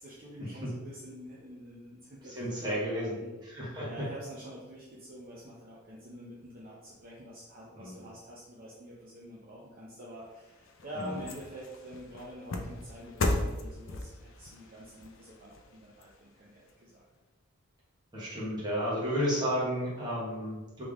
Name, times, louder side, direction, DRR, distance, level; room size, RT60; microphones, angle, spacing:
voice 1, 0.0-3.3 3.8-17.0, equal, 40° right, -5 dB, 0.6 m, -47 dB
voice 2, 2.2-3.2 3.4-3.9 7.7-8.0 10.9-11.2 18.1-20.8, equal, 20° right, -7 dB, 1.3 m, -32 dB
sound 1, 10.2-16.7 17.2-17.3, left 2 dB, 60° left, 0.5 m, -37 dB
3.6 x 3.3 x 3.5 m, 1.1 s
head